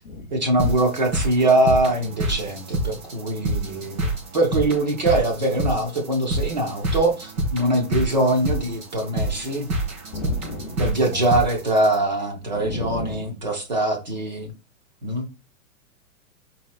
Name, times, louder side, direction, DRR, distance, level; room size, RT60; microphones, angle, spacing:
voice 1, 0.3-9.7 10.8-14.5 15.0-15.3, right 2 dB, 35° right, 3 dB, 0.4 m, -22 dB
sound 1, 0.6-12.0, right 1 dB, 80° right, 2.1 m, -28 dB
voice 2, 10.1-10.8 12.5-13.2, left 2 dB, 35° left, 4 dB, 0.5 m, -33 dB
4.1 x 3.8 x 2.4 m, 0.30 s
hypercardioid pair, 175°, 42 cm